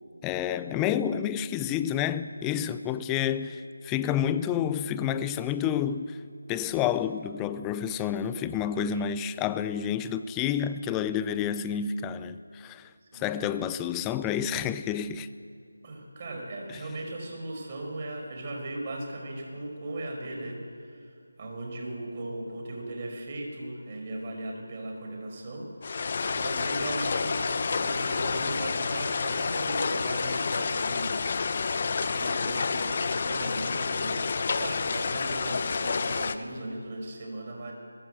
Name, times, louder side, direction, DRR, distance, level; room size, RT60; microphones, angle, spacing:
voice 1, 0.2-6.2 6.5-15.3, left 9 dB, 10° left, 0.5 m, -29 dB
voice 2, 8.6-9.0 13.1-13.3 15.8-25.7 26.3-31.6 32.0-37.7, right 1 dB, 30° right, 5.3 m, -38 dB
sound 1, 25.8-36.4, left 4 dB, 40° left, 1.1 m, -29 dB
22.5 x 22.0 x 7.9 m
figure-of-eight pair, 165°, 0 cm